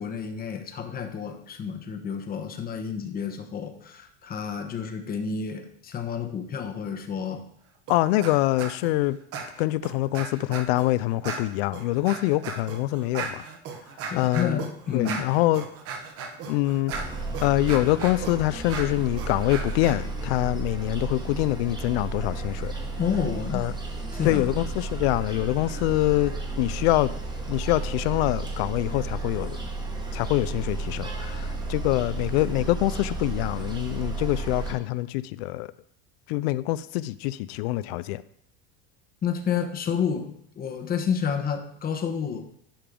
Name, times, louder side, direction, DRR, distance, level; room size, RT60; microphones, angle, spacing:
voice 1, 0.0-7.4 14.1-15.2 23.0-23.7 24.1-24.5 39.2-42.5, left 7 dB, 30° left, 6 dB, 1.0 m, -30 dB
voice 2, 7.9-9.2 9.6-13.4 14.2-14.6 14.9-15.6 16.5-17.0 17.4-22.7 23.5-23.7 24.2-27.1 27.5-29.6 30.1-35.7 36.3-38.2, left 17 dB, 85° left, 17 dB, 0.5 m, -25 dB
sound 1, 7.9-8.3 8.6-8.9 9.3-10.9 11.2-19.9, right 5 dB, 50° right, 1.2 m, -36 dB
sound 2, 16.9-34.7, right 3 dB, 15° right, 1.2 m, -33 dB
10.0 x 5.0 x 3.7 m, 0.69 s
supercardioid pair, 130°, 31 cm